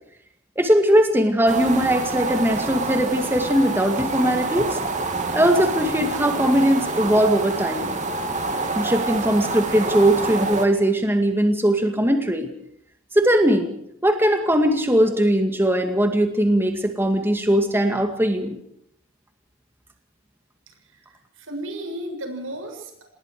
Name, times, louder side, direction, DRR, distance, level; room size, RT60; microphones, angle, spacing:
voice 1, 0.6-4.8 5.3-7.9 8.8-12.5 13.1-13.7 14.0-18.6, equal, 10° right, 5 dB, 2.2 m, -20 dB
sound 1, 1.5-10.7, right 3 dB, 40° right, 3.0 m, -27 dB
voice 2, 20.7-23.0, right 1 dB, 85° right, 4 dB, 7.3 m, -34 dB
28.5 x 20.5 x 5.0 m, 0.72 s
head